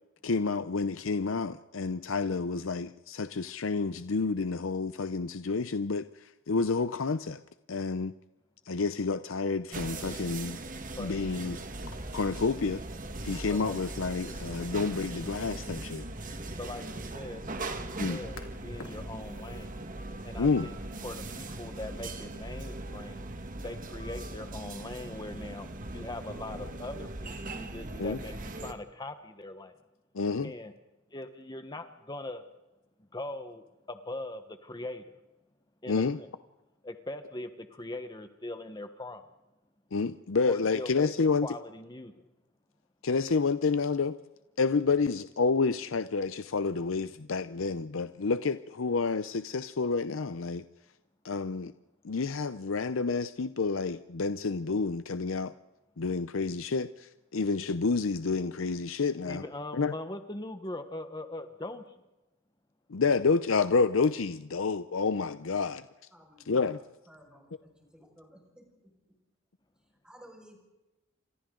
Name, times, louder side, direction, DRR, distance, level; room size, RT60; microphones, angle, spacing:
voice 1, 0.2-7.4 7.7-8.1 8.7-10.6 11.0-11.6 12.1-12.8 13.2-16.0 18.0-18.2 20.4-20.7 28.0-28.2 30.1-30.5 35.9-36.2 39.9-41.5 43.0-44.2 44.6-50.6 51.2-51.7 52.0-55.5 56.0-59.4 59.7-59.9 62.9-65.8 66.5-66.8, left 4 dB, 70° left, 0.6 m, -29 dB
sound 1, 9.7-28.7, right 2 dB, 40° right, 1.7 m, -40 dB
voice 2, 16.6-18.4 18.6-19.7 20.2-20.7 21.0-23.2 23.6-29.7 30.4-30.7 31.1-32.4 33.1-35.2 35.8-36.3 36.8-39.3 40.5-42.3 59.3-61.8, left 2 dB, 20° left, 1.2 m, -41 dB
sound 2, 18.2-19.8, left 3 dB, 85° left, 2.4 m, -57 dB
voice 3, 66.1-66.7 67.1-68.6 70.0-70.6, equal, 5° right, 5.7 m, -55 dB
29.5 x 26.0 x 3.9 m
head